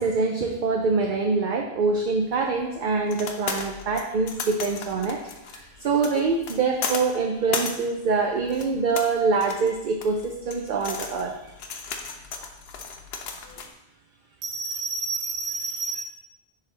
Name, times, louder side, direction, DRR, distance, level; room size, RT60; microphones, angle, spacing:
voice 1, 0.0-5.2 5.5-11.5, right 4 dB, 60° right, 2 dB, 0.7 m, -25 dB
sound 1, 2.0-13.7, left 5 dB, 75° left, 0.9 m, -36 dB
voice 2, 14.4-16.0, right 3 dB, 80° right, 3 dB, 1.1 m, -30 dB
10.5 x 3.5 x 3.3 m, 0.92 s
omnidirectional pair, 1.0 m